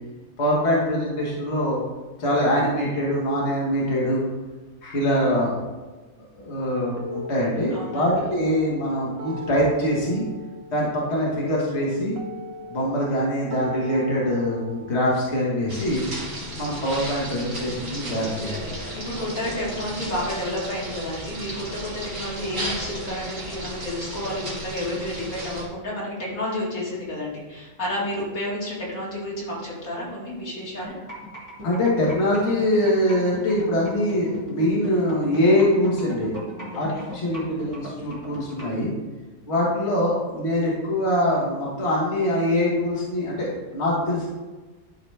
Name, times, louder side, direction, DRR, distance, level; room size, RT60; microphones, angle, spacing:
voice 1, 0.4-1.8 2.2-4.2 4.8-5.6 6.3-10.2 10.7-12.2 12.7-16.0 16.6-18.5 31.6-36.3 36.7-38.9 39.5-44.3, left 1 dB, 50° left, -5 dB, 1.7 m, -23 dB
sound 1, 7.0-17.0, left 1 dB, 50° right, 1.0 m, -38 dB
voice 2, 7.7-8.1 18.9-30.9 36.5-37.0, left 1 dB, 75° left, -5 dB, 2.4 m, -31 dB
sound 2, 15.7-25.6, right 1 dB, 35° right, 2.0 m, -34 dB
sound 3, 30.8-38.8, left 1 dB, 10° right, 2.3 m, -37 dB
11.5 x 4.0 x 3.3 m, 1.2 s
omnidirectional pair, 1.5 m